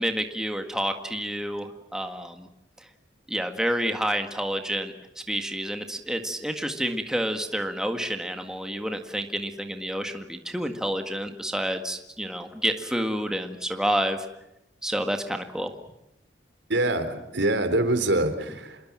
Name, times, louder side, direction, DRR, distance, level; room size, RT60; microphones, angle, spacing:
voice 1, 0.0-2.5 3.3-4.9 5.3-14.3 14.8-15.7, equal, 5° right, 5 dB, 1.8 m, -29 dB
voice 2, 16.7-18.8, right 1 dB, 75° right, 9 dB, 3.7 m, -24 dB
27.5 x 21.5 x 7.5 m, 0.86 s
head